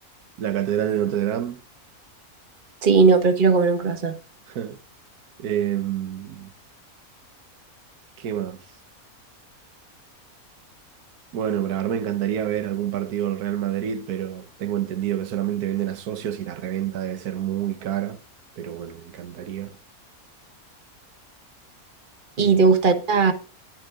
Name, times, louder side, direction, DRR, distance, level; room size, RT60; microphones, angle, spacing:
voice 1, 0.4-1.6 4.5-4.8 5.4-6.5 8.2-8.6 11.3-18.2 18.6-19.8 22.4-22.6, right 10 dB, 85° right, 1.4 m, -27 dB
voice 2, 2.8-4.2 22.4-23.3, right 4 dB, 35° right, 1.5 m, -18 dB
21.0 x 7.5 x 2.4 m
omnidirectional pair, 1.6 m